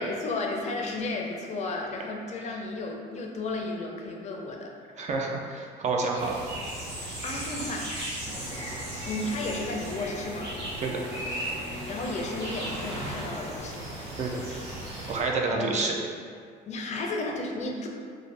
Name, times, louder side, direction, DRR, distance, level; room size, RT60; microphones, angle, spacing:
voice 1, 0.0-4.7 7.2-7.9 9.1-10.5 11.9-13.9 15.5-15.7 16.7-17.9, left 2 dB, 45° left, 1 dB, 0.4 m, -33 dB
voice 2, 5.0-6.4 8.3-8.4 10.8-11.0 14.2-14.4 15.1-16.0, right 3 dB, 45° right, 0 dB, 0.4 m, -28 dB
sound 1, 6.2-15.2, right 1 dB, 80° right, 1.2 m, -37 dB
sound 2, 8.3-13.6, equal, 25° right, 1.1 m, -39 dB
2.6 x 2.5 x 3.2 m, 2.1 s
cardioid pair, 110°, 17 cm